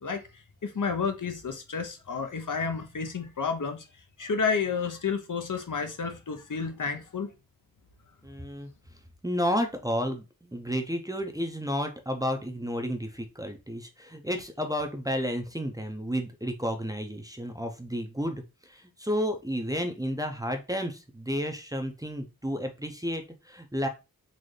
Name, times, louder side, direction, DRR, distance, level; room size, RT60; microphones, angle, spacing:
voice 1, 0.0-3.9 4.2-7.3, left 5 dB, 60° left, 0.7 m, -31 dB
voice 2, 8.2-8.7 9.2-23.9, equal, 10° right, 0.6 m, -31 dB
4.0 x 2.6 x 3.2 m
wide cardioid pair, 55°, 36 cm